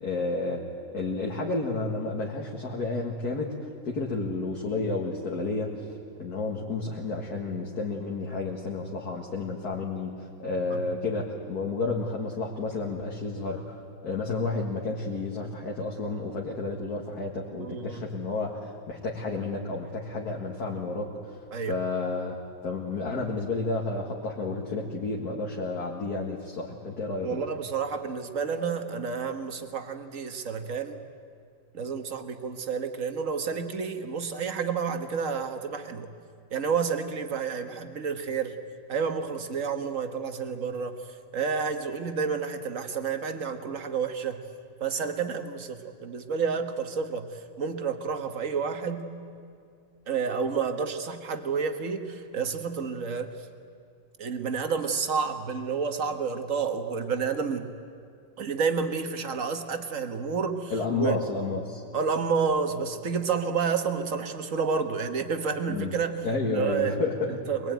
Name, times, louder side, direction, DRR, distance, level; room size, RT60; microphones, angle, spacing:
voice 1, 0.0-5.9 6.2-21.4 21.7-22.4 22.6-27.4 60.7-61.8 65.7-65.9 66.2-67.3, left 3 dB, 50° left, -1 dB, 2.3 m, -31 dB
voice 2, 17.6-18.1 21.5-21.8 27.2-31.0 31.7-36.1 36.5-38.6 38.9-41.0 41.3-44.4 44.8-49.1 50.1-53.3 54.2-57.7 58.4-61.2 61.9-66.9 67.5-67.7, right 5 dB, 45° right, 7 dB, 1.6 m, -30 dB
23.0 x 21.5 x 9.3 m, 2.3 s
omnidirectional pair, 2.2 m